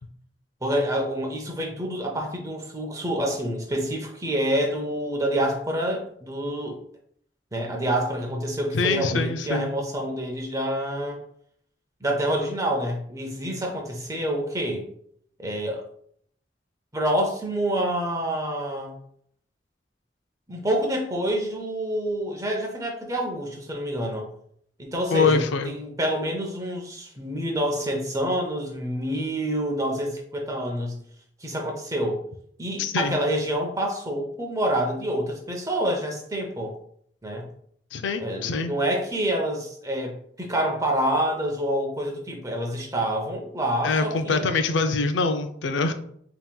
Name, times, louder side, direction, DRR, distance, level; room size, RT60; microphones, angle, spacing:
voice 1, 0.6-6.8 7.5-11.2 12.0-14.9 15.4-15.8 16.9-19.0 20.5-24.3 24.8-31.0 31.4-32.2 32.6-36.8 37.2-37.5 38.2-44.5, right 1 dB, 20° right, 2 dB, 0.6 m, -27 dB
voice 2, 8.7-9.7 25.1-25.7 32.8-33.2 37.9-38.7 43.8-45.9, left 4 dB, 85° left, 8 dB, 0.4 m, -24 dB
5.4 x 2.9 x 2.2 m, 0.66 s
head